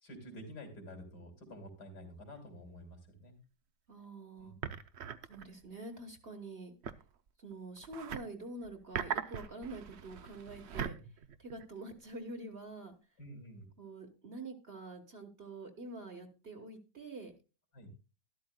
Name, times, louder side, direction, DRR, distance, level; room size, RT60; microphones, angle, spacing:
voice 1, 0.0-3.3 4.4-4.7 10.9-11.0 13.2-13.6 17.7-17.9, equal, 75° left, 4 dB, 3.4 m, -50 dB
sound 1, 2.3-2.4 2.8-2.9 4.6-5.7 6.8-8.3 8.6-12.1, right 8 dB, 60° right, 0.7 m, -41 dB
voice 2, 3.9-4.5 5.2-6.7 7.4-10.9 11.4-13.0 13.8-17.3, right 2 dB, 40° right, 4 dB, 1.5 m, -46 dB
12.5 x 12.0 x 2.2 m, 0.30 s
omnidirectional pair, 1.8 m